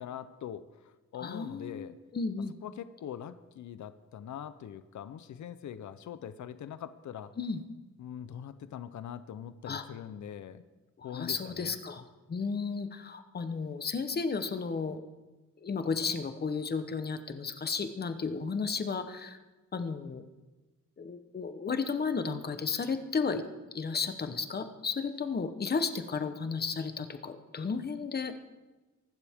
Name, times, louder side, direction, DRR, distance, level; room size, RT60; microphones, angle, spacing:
voice 1, 0.0-2.0 2.6-7.3 8.0-10.6 11.0-11.8, left 9 dB, 70° left, 13 dB, 0.7 m, -42 dB
voice 2, 1.2-2.5 7.4-7.6 9.7-9.8 11.0-15.0 15.6-19.4 19.7-20.2 21.0-23.4 23.7-28.4, left 5 dB, 35° left, 9 dB, 0.9 m, -33 dB
24.0 x 12.0 x 3.6 m, 1.2 s
wide cardioid pair, 175°, 30 cm